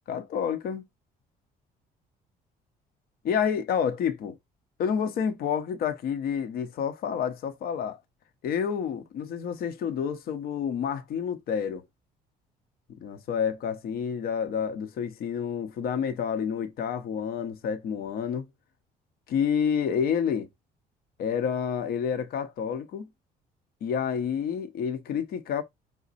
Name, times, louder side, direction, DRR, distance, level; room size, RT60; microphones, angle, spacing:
voice 1, 0.1-0.8 3.2-4.4 4.8-8.0 8.4-11.8 13.0-18.5 19.3-20.5 21.2-23.1 23.8-25.6, left 7 dB, 65° left, 0.8 m, -29 dB
5.0 x 2.2 x 4.0 m
cardioid pair, 110°, 17 cm